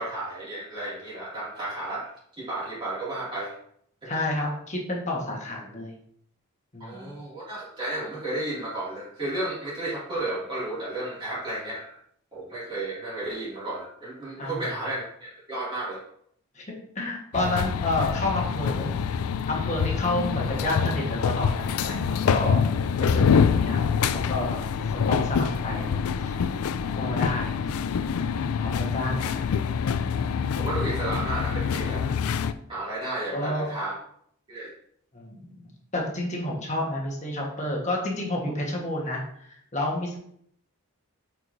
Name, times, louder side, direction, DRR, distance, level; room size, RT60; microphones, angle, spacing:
voice 1, 0.0-3.5 4.0-4.2 6.8-11.9 12.3-16.0 30.6-32.2 32.7-34.0 34.5-34.7, right 2 dB, 20° right, -9 dB, 2.5 m, -33 dB
voice 2, 4.1-5.9 6.7-7.1 14.4-14.6 16.5-16.6 16.9-18.9 19.5-22.6 23.1-23.8 24.1-24.6 25.1-26.4 27.0-27.6 28.1-29.6 33.3-33.7 35.1-40.2, left 1 dB, 30° left, -1 dB, 1.4 m, -30 dB
sound 1, 17.3-32.5, left 6 dB, 75° left, 0.4 m, -26 dB
8.1 x 4.7 x 2.7 m, 0.68 s
head